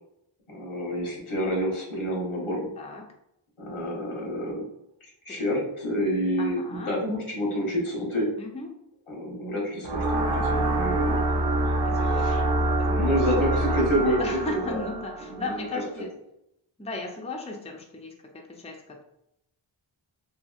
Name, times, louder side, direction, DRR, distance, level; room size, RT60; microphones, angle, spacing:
voice 1, 0.5-2.7 3.6-4.7 5.2-8.3 9.1-11.4 11.6-11.7 12.1-12.4 12.8-14.7 15.3-15.4, equal, 90° left, -3 dB, 1.0 m, -28 dB
voice 2, 6.4-7.0 8.4-8.7 11.8-13.1 13.9-16.1 16.8-19.0, left 3 dB, 15° left, 1 dB, 0.4 m, -36 dB
sound 1, 9.8-15.9, right 1 dB, 55° right, 0.5 m, -26 dB
2.7 x 2.7 x 2.3 m, 0.81 s
wide cardioid pair, 55°, 49 cm